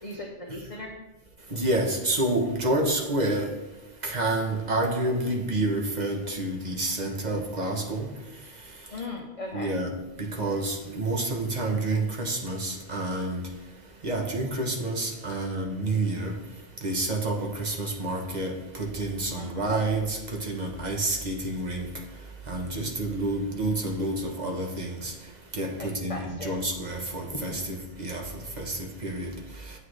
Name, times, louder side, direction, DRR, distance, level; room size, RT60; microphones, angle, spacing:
voice 1, 0.0-1.0 8.9-9.8 19.4-19.6 25.8-26.6 27.3-27.4, left 2 dB, 35° left, 0 dB, 0.9 m, -38 dB
voice 2, 1.5-3.4 4.0-8.1 9.5-9.9 10.2-13.4 14.0-16.3 16.8-18.5 18.8-20.2 20.5-21.9 22.5-25.1 25.6-28.2 28.6-29.3, right 2 dB, 40° right, 2 dB, 1.2 m, -28 dB
8.4 x 7.6 x 3.3 m, 1.0 s
omnidirectional pair, 1.2 m